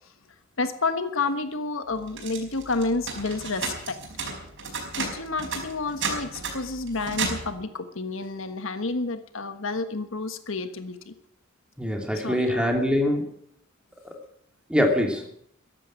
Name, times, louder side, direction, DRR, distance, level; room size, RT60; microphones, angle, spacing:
voice 1, 0.6-4.0 5.0-11.1 12.2-12.7, left 3 dB, 70° left, 9 dB, 1.3 m, -30 dB
sound 1, 2.1-7.6, right 4 dB, 65° right, 5.0 m, -33 dB
voice 2, 11.8-13.3 14.0-14.2 14.7-15.2, left 1 dB, 5° right, 3 dB, 2.9 m, -23 dB
14.5 x 11.0 x 8.9 m, 0.70 s
head